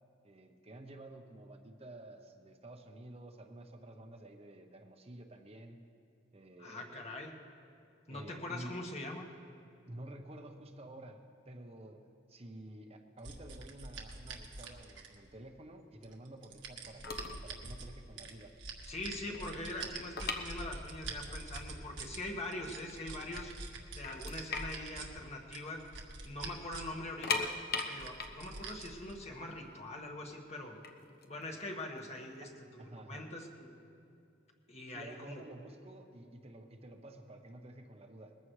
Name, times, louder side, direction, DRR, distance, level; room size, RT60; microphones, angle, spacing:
voice 1, 0.2-5.8 6.3-7.0 8.1-8.8 9.9-18.5 19.3-19.6 32.4-33.3 34.9-38.4, right 1 dB, 35° right, 4 dB, 0.8 m, -51 dB
voice 2, 6.6-7.3 8.1-9.2 18.8-23.5 23.9-25.8 26.2-27.6 27.8-30.8 31.3-33.8 34.7-35.4, left 2 dB, 35° left, 1 dB, 1.6 m, -43 dB
sound 1, 13.2-15.4 16.0-17.9 18.2-22.2 22.5-25.1 25.5-27.0 27.2-27.3 27.8-29.1, right 3 dB, 80° right, 1.5 m, -45 dB
sound 2, 16.8-16.9 17.0-17.5 17.8-18.0 18.5-18.6 18.9-21.1 21.4-21.5 22.1-22.2 22.6-23.3 23.7-23.8 24.0-26.0 26.3-26.4 27.0-29.9 30.6-32.4, left 4 dB, 55° left, 1.0 m, -39 dB
21.0 x 14.5 x 3.2 m, 2.6 s
head